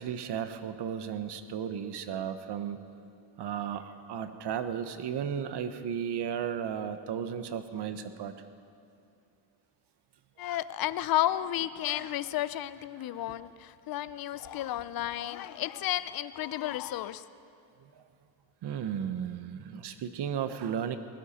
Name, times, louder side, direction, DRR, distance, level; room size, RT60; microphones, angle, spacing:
voice 1, 0.0-2.8 3.4-8.3 17.9-18.0 18.6-21.0, right 8 dB, 60° right, 10 dB, 1.1 m, -34 dB
voice 2, 10.4-17.2, left 13 dB, 50° left, 15 dB, 0.6 m, -32 dB
20.5 x 16.0 x 4.3 m, 2.5 s
cardioid pair, 90°, 45 cm